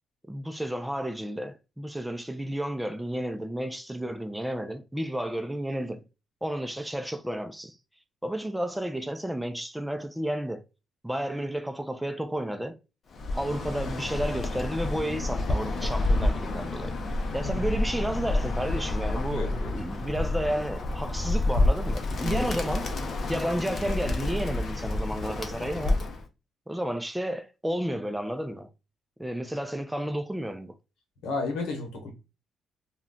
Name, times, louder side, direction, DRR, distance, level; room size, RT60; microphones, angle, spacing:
voice 1, 0.3-6.0 6.4-7.8 8.2-10.6 11.0-12.8 13.3-17.0 17.3-23.0 23.3-26.0 26.7-28.7 29.2-30.7, right 1 dB, 5° right, 0.3 m, -32 dB
Bird, 13.1-26.2, left 2 dB, 50° left, 0.6 m, -29 dB
voice 2, 19.3-19.8 22.2-22.5 31.2-32.1, left 3 dB, 85° left, 0.9 m, -33 dB
2.3 x 2.2 x 3.7 m
cardioid pair, 90°, 0 cm